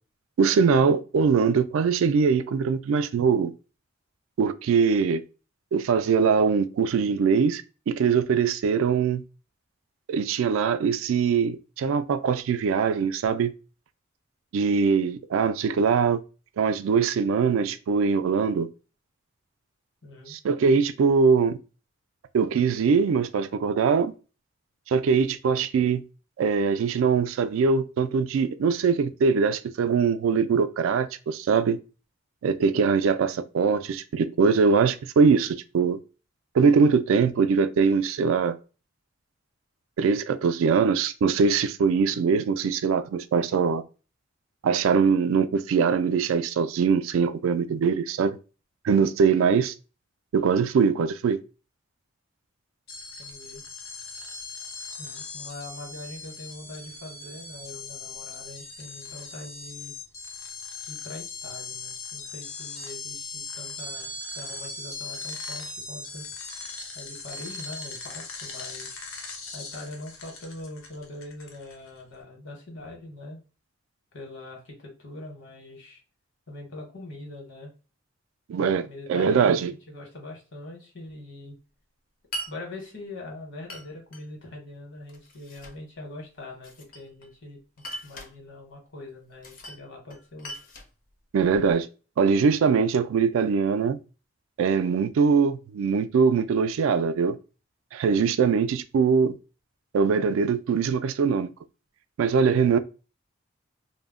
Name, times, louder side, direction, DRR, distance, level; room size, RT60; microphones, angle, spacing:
voice 1, 0.4-3.5 4.4-5.2 5.7-9.2 10.1-13.5 14.5-16.2 16.6-18.7 20.3-21.6 22.3-24.1 24.9-26.0 26.4-31.8 32.4-36.0 36.5-38.6 40.0-43.8 44.6-48.4 48.8-49.7 50.3-51.4 78.5-79.7 91.3-91.9 92.2-94.0 94.6-97.4 97.9-99.4 99.9-101.5 102.2-102.8, right 5 dB, 80° right, 0.3 m, -22 dB
voice 2, 20.0-20.4 53.2-53.6 55.0-60.0 60.8-66.2 66.9-69.0 69.5-73.4 74.1-76.0 76.5-77.7 78.8-81.6 82.5-87.6 88.0-90.5, left 2 dB, 65° left, 1.0 m, -42 dB
sound 1, 52.9-72.0, left 4 dB, 85° left, 0.6 m, -39 dB
Glass, 82.3-82.5 83.7-84.2 85.1-85.8 86.6-87.3 87.8-88.4 89.4-89.8 90.1-91.8, right 1 dB, 40° left, 0.5 m, -40 dB
2.1 x 2.0 x 3.5 m
head